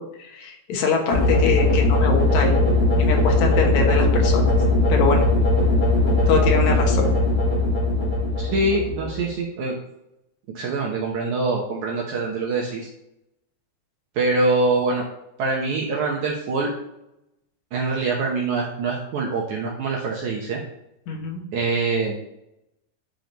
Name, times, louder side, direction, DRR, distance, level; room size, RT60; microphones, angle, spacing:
voice 1, 0.0-4.5 4.9-5.2 6.3-7.2 21.1-21.4, left 4 dB, 70° left, 2 dB, 1.7 m, -24 dB
sound 1, 1.1-9.3, left 2 dB, 40° left, 3.4 m, -19 dB
voice 2, 8.4-9.7 10.5-12.9 14.2-15.0 15.4-16.7 17.7-20.6 21.5-22.2, right 3 dB, 75° right, -2 dB, 1.7 m, -24 dB
10.5 x 5.1 x 3.1 m, 0.84 s
omnidirectional pair, 4.8 m